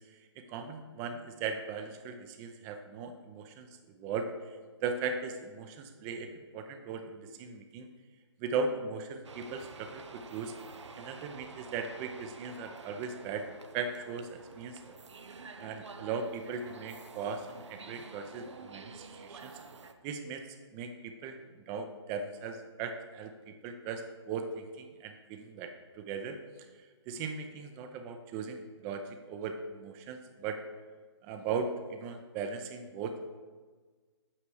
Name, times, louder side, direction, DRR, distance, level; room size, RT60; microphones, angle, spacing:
voice 1, 0.4-4.3 4.8-7.9 8.4-10.5 11.0-13.5 13.7-14.9 15.6-19.6 20.0-20.4 20.7-26.4 27.1-30.6 31.2-33.4, right 5 dB, 20° right, 7 dB, 0.6 m, -38 dB
sound 1, 9.2-19.9, right 4 dB, 85° right, 0.8 m, -49 dB
8.6 x 5.8 x 4.8 m, 1.4 s
hypercardioid pair, 150°, 15 cm